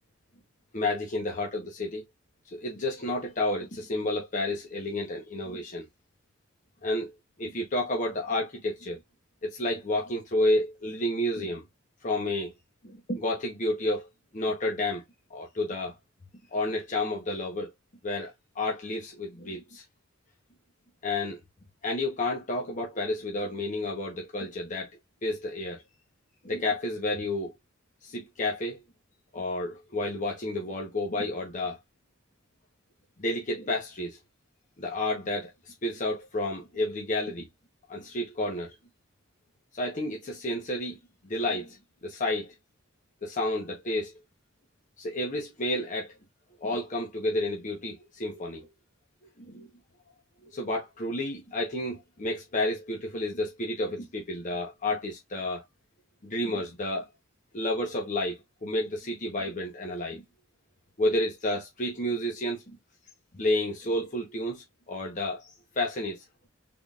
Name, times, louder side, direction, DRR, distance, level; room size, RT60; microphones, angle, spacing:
voice 1, 0.7-2.0 2.5-5.9 6.8-7.1 7.4-9.0 9.4-11.6 12.0-12.5 12.8-14.1 14.3-15.0 15.3-15.9 16.5-17.7 18.0-19.8 21.0-21.4 21.8-24.9 25.2-25.8 26.4-27.5 28.0-28.8 29.3-31.8 33.2-34.2 34.8-37.5 37.9-38.7 39.7-41.0 41.2-42.5 43.2-44.1 45.0-46.1 46.6-48.7 49.4-49.7 50.5-55.6 56.2-57.1 57.5-60.2 61.0-62.8 63.3-65.5 65.8-66.2, left 1 dB, 40° left, 1.0 m, -30 dB
4.0 x 3.6 x 2.4 m
head